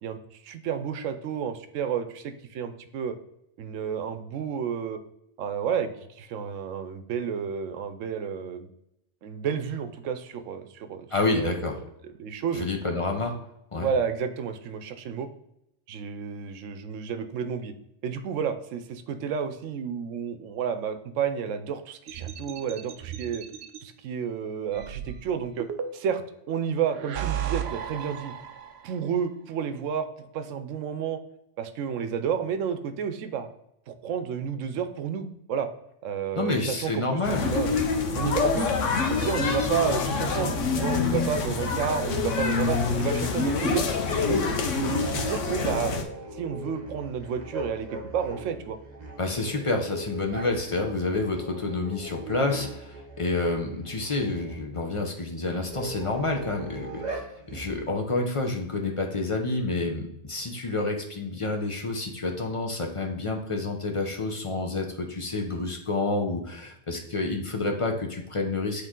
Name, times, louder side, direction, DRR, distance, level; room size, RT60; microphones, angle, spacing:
voice 1, 0.0-3.1 3.6-5.0 5.4-8.7 9.2-11.6 12.2-12.7 13.8-15.3 15.9-17.7 18.0-23.4 23.8-25.7 25.9-26.2 26.5-28.3 28.8-31.2 31.6-33.5 33.9-35.7 36.0-37.8 38.1-38.8 39.1-43.8 44.2-44.5 44.7-45.9 46.3-48.8, right 7 dB, 90° right, 9 dB, 1.0 m, -31 dB
voice 2, 11.1-11.7 12.6-13.3 13.7-13.9 36.4-37.6 49.2-57.3 57.5-68.9, left 2 dB, 35° left, 3 dB, 0.6 m, -29 dB
sound 1, 22.1-23.8 24.7-26.3 26.9-29.0, right 9 dB, 65° right, 0.8 m, -35 dB
sound 2, 37.2-46.0, left 4 dB, 80° left, 1.1 m, -26 dB
sound 3, 44.1-54.6 55.6-57.9, right 1 dB, 35° right, 1.1 m, -39 dB
8.5 x 3.2 x 3.7 m, 0.81 s
omnidirectional pair, 1.3 m